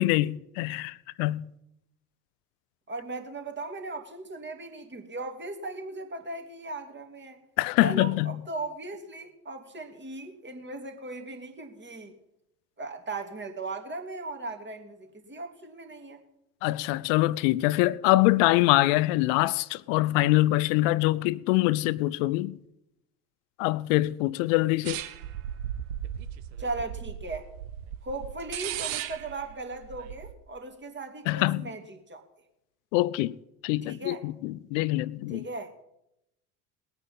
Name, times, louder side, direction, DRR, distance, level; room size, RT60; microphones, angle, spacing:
voice 1, 0.0-1.5 7.6-8.4 16.6-22.6 23.6-25.0 31.3-31.7 32.9-33.3 33.6-35.4, left 18 dB, 55° left, 0.7 m, -24 dB
voice 2, 2.9-7.4 7.8-12.1 12.8-16.2 26.6-27.4 28.0-32.2 33.9-34.2 35.3-35.7, right 2 dB, 25° right, 2.8 m, -38 dB
sound 1, 24.8-30.3, right 11 dB, 60° right, 1.3 m, -37 dB
20.0 x 9.0 x 5.5 m
figure-of-eight pair, 65°, 45 cm